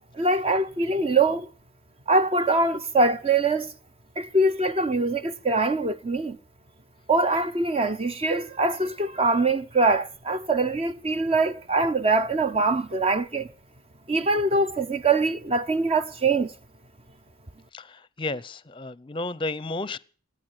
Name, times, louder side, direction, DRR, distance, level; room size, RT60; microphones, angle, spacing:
voice 1, 0.1-1.5 2.1-3.7 4.2-6.4 7.1-13.5 14.1-16.5, right 3 dB, 30° right, 0.7 m, -23 dB
voice 2, 17.7-20.0, left 2 dB, 25° left, 0.7 m, -32 dB
18.0 x 9.6 x 8.0 m
head